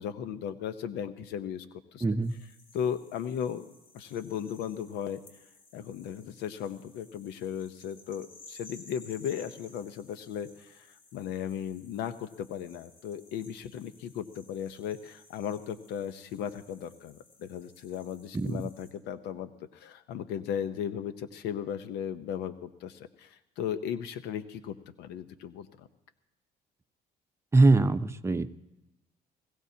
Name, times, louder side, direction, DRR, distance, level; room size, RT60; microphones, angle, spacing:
voice 1, 0.0-2.0 2.7-3.7 3.9-5.2 5.7-25.9, left 9 dB, 90° left, 11 dB, 0.8 m, -36 dB
voice 2, 2.0-2.3 18.3-18.6 27.5-28.6, right 3 dB, 15° right, 9 dB, 0.6 m, -23 dB
sound 1, 2.2-18.9, left 2 dB, 60° left, 4.4 m, -56 dB
20.5 x 16.0 x 2.8 m, 0.95 s
cardioid pair, 110°, 17 cm